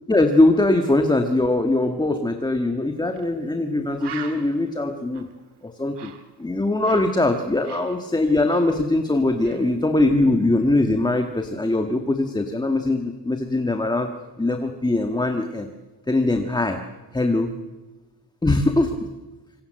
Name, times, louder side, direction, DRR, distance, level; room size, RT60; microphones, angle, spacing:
voice 1, 0.1-5.3 5.6-6.1 6.4-14.1 14.4-15.7 16.1-16.8 17.1-17.5 18.4-19.0, left 2 dB, 10° left, 5 dB, 1.5 m, -21 dB
Bird, 3.1-3.3 3.6-3.7 4.0-7.2 7.4-9.1 9.4-9.7, right 7 dB, 75° right, 2.9 m, -42 dB
27.0 x 25.5 x 7.7 m, 1.2 s
wide cardioid pair, 170°, 42 cm